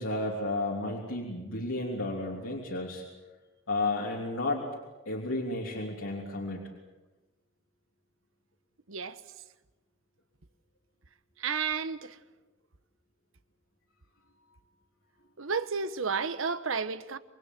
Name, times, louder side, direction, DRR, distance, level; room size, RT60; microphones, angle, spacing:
voice 1, 0.0-3.0 3.7-4.7 5.0-6.6, left 2 dB, 90° left, 3.3 m, -32 dB
voice 2, 8.9-9.2 11.4-12.2 15.4-17.2, right 5 dB, 85° right, 1.1 m, -32 dB
27.5 x 21.0 x 7.6 m
head